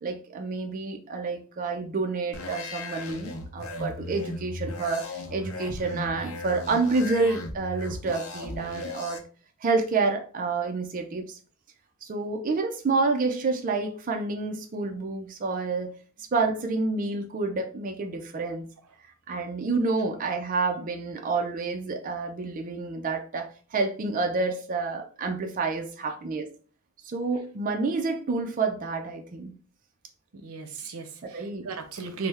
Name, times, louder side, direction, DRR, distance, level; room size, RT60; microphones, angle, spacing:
voice 1, 0.0-9.2 9.6-11.4 12.0-15.9 16.3-18.7 19.3-26.5 27.0-29.5 31.3-31.7, right 3 dB, 40° right, 4 dB, 0.4 m, -28 dB
sound 1, 2.3-9.2, left 2 dB, 75° left, 0.7 m, -37 dB
voice 2, 30.3-32.3, right 4 dB, 90° right, 7 dB, 0.6 m, -36 dB
3.2 x 2.1 x 3.3 m, 0.40 s
head